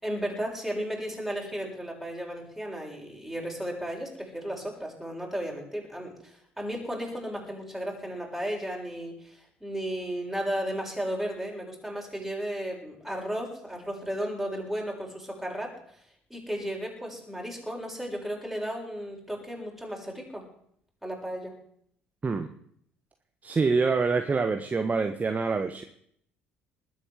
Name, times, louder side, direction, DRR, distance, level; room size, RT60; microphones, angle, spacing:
voice 1, 0.0-15.7 16.3-20.4 21.0-21.5, equal, ahead, -1 dB, 7.4 m, -34 dB
voice 2, 23.4-25.8, right 4 dB, 25° right, 7 dB, 1.4 m, -26 dB
20.0 x 8.8 x 7.7 m, 0.66 s
figure-of-eight pair, 55°, 6 cm